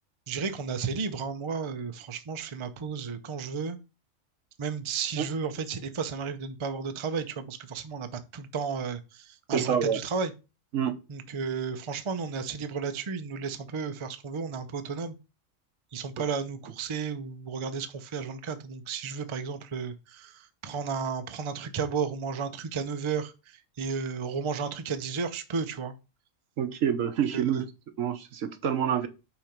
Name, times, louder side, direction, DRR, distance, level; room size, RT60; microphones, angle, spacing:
voice 1, 0.3-3.8 4.6-10.3 11.1-15.1 15.9-25.9 27.3-27.7, right 5 dB, 35° right, 0.5 m, -33 dB
voice 2, 9.5-10.0 10.7-10.9 26.6-27.6 28.0-29.1, right 8 dB, 75° right, 1.3 m, -27 dB
5.8 x 4.3 x 5.1 m
omnidirectional pair, 1.4 m